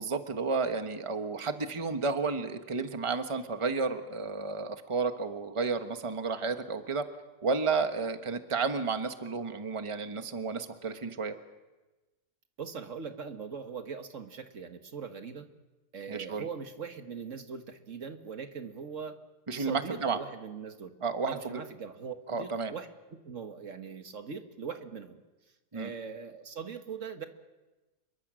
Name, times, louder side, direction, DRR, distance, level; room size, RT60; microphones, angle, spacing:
voice 1, 0.0-7.1 7.4-11.3 16.1-16.4 19.5-20.2 21.0-21.4 22.3-22.7 25.7-25.9, right 4 dB, 20° right, 7 dB, 1.2 m, -32 dB
voice 2, 12.6-15.5 15.9-19.2 19.5-20.9 21.2-25.2 25.7-27.3, right 6 dB, 50° right, 7 dB, 1.7 m, -41 dB
27.0 x 22.5 x 6.3 m, 1.1 s
omnidirectional pair, 1.7 m